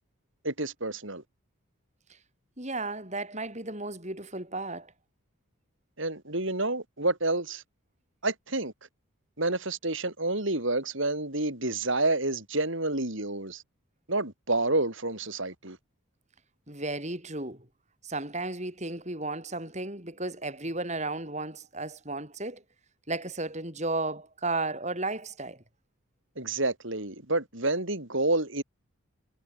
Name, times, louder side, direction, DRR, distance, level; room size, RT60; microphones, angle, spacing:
voice 1, 0.4-1.2 6.0-7.6 8.2-8.7 9.4-13.6 14.1-15.8 26.4-28.6, right 2 dB, 60° right, 4.7 m, -29 dB
voice 2, 2.6-4.9 16.7-17.7 18.0-22.6 23.1-25.6, right 2 dB, 30° right, 6.5 m, -34 dB
head